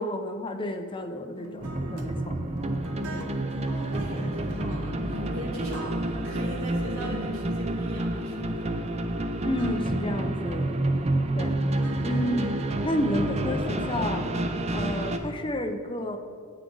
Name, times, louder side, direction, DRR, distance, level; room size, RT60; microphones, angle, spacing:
voice 1, 0.0-2.4 3.1-3.3 9.4-10.8 11.3-11.6 12.0-12.5 12.8-14.3 14.7-16.2, left 1 dB, 25° left, 6 dB, 0.5 m, -31 dB
sound 1, 1.3-14.4, equal, 90° right, 0.7 m, -44 dB
sound 2, 1.6-15.2, right 1 dB, 30° right, 0.5 m, -29 dB
Telephone, 1.9-2.9 3.2-3.5 3.9-10.0, equal, 45° right, 0.9 m, -44 dB
voice 2, 3.7-8.8, right 1 dB, 75° right, -2 dB, 2.1 m, -39 dB
9.8 x 8.2 x 3.9 m, 2.3 s
head